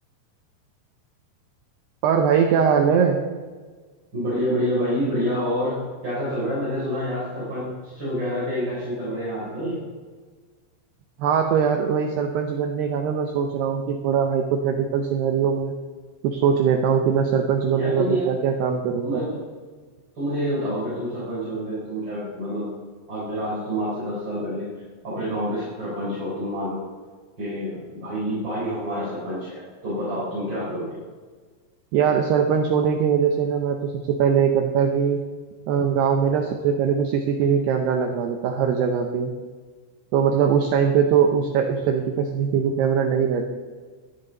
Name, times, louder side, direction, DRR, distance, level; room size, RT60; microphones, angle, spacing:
voice 1, 2.0-3.2 11.2-15.7 16.2-19.2 31.9-35.2 35.7-39.3 40.1-43.5, right 7 dB, 85° right, 4 dB, 2.3 m, -21 dB
voice 2, 4.1-5.8 6.0-9.8 17.7-18.3 19.0-19.4 20.1-22.7 23.1-24.7 25.0-26.8 27.4-31.0, equal, 20° right, -9 dB, 5.0 m, -27 dB
13.5 x 12.5 x 3.9 m, 1.4 s
omnidirectional pair, 5.8 m